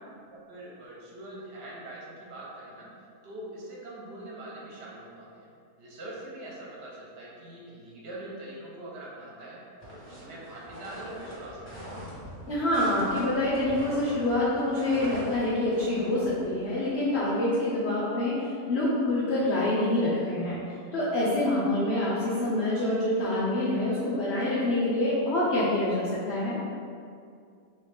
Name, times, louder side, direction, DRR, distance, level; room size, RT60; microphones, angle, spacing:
voice 1, 0.3-2.9 3.2-5.5 5.8-9.6 9.9-12.0, right 1 dB, 55° right, -5 dB, 0.7 m, -43 dB
sound 1, 9.8-17.3, equal, 10° right, 0.6 m, -42 dB
voice 2, 12.5-18.4 18.7-20.6 20.9-26.6, left 1 dB, 70° left, -8 dB, 0.6 m, -26 dB
3.1 x 2.7 x 3.4 m, 2.3 s
omnidirectional pair, 1.8 m